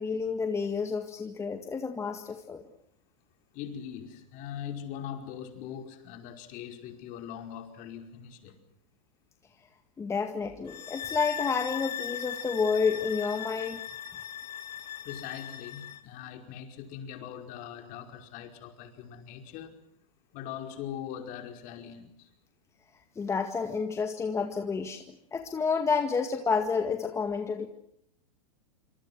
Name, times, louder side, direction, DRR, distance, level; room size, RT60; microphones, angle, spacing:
voice 1, 0.0-2.6 10.0-13.8 23.2-27.7, left 5 dB, 15° left, 5 dB, 1.9 m, -30 dB
voice 2, 3.5-8.5 15.0-19.8 20.3-22.3, left 9 dB, 40° left, 5 dB, 5.2 m, -41 dB
sound 1, 10.7-16.1, left 10 dB, 85° left, 1.6 m, -38 dB
27.5 x 26.5 x 6.3 m, 0.72 s
hypercardioid pair, 130°, 20 cm